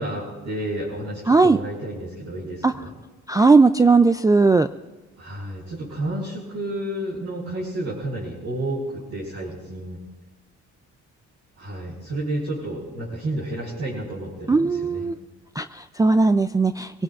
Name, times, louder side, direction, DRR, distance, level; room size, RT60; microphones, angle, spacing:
voice 1, 0.0-2.9 5.2-10.0 11.6-15.1, right 1 dB, 60° right, -7 dB, 5.0 m, -31 dB
voice 2, 1.3-1.6 2.6-2.7 3.3-4.7 14.5-15.1 15.6-16.9, right 3 dB, 10° right, 10 dB, 0.3 m, -17 dB
23.5 x 17.5 x 2.5 m, 1.2 s
cardioid pair, 90°, 30 cm